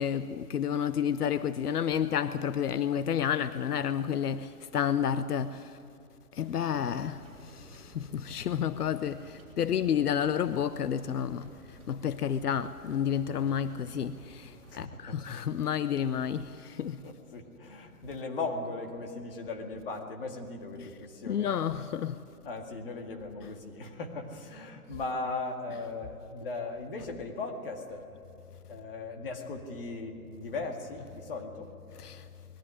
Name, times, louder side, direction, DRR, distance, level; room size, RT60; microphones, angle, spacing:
voice 1, 0.0-5.8 6.3-17.0 20.8-20.9 21.3-22.2 32.0-32.3, left 8 dB, 80° left, 0.8 m, -30 dB
sound 1, 6.4-14.9, right 1 dB, 20° right, 3.8 m, -54 dB
voice 2, 14.7-15.2 17.0-21.6 22.4-28.1 28.7-31.7, left 3 dB, 35° left, 2.1 m, -38 dB
20.5 x 14.0 x 9.9 m
hypercardioid pair, 170°, 45 cm